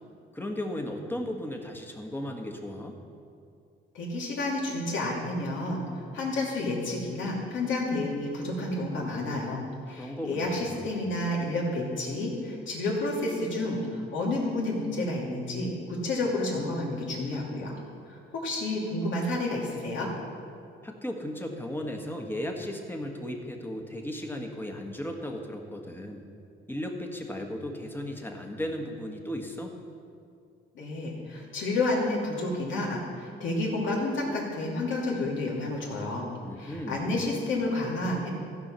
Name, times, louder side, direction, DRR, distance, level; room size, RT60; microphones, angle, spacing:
voice 1, 0.3-3.0 10.0-10.9 20.8-26.2 26.7-29.8 36.4-37.1, left 1 dB, 10° left, 2 dB, 1.5 m, -35 dB
voice 2, 3.9-9.6 9.9-17.7 18.1-20.1 30.7-36.3 36.6-38.3, left 2 dB, 75° left, -3 dB, 2.7 m, -30 dB
15.0 x 5.6 x 5.6 m, 2.4 s
cardioid pair, 90°, 20 cm